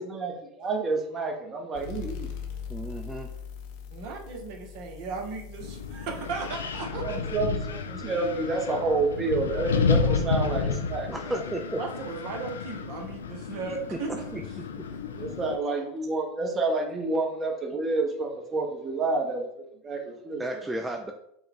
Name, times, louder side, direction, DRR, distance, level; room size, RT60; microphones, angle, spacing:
voice 1, 0.0-2.3 7.0-11.3 15.2-19.5 19.8-20.7, right 3 dB, 30° right, 3 dB, 0.9 m, -29 dB
sound 1, 1.7-9.0, left 8 dB, 65° left, 0.8 m, -42 dB
voice 2, 2.7-3.3 8.1-8.2 11.1-11.8 13.9-14.9 17.7-17.8 20.4-21.1, right 1 dB, 10° right, 4 dB, 0.4 m, -34 dB
voice 3, 3.9-7.3 11.8-14.1, right 4 dB, 60° right, 1 dB, 1.0 m, -36 dB
Wind, 5.6-15.6, left 5 dB, 85° left, 0.4 m, -31 dB
5.3 x 2.3 x 3.5 m, 0.77 s
hypercardioid pair, 90°, 0 cm